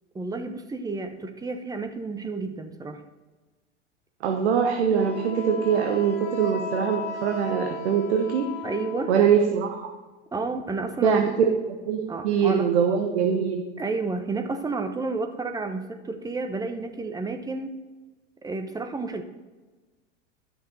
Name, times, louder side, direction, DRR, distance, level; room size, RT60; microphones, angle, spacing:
voice 1, 0.1-3.0 8.6-9.1 10.3-11.4 12.1-12.7 13.8-17.8 18.4-19.2, right 3 dB, 10° right, 6 dB, 0.8 m, -31 dB
voice 2, 4.2-8.5 9.1-9.9 11.0-13.6, right 7 dB, 65° right, 4 dB, 1.1 m, -23 dB
Wind instrument woodwind instrument, 4.9-9.4, left 3 dB, 80° left, 1.8 m, -35 dB
11.5 x 6.0 x 4.2 m, 1.2 s
hypercardioid pair, 100°, 36 cm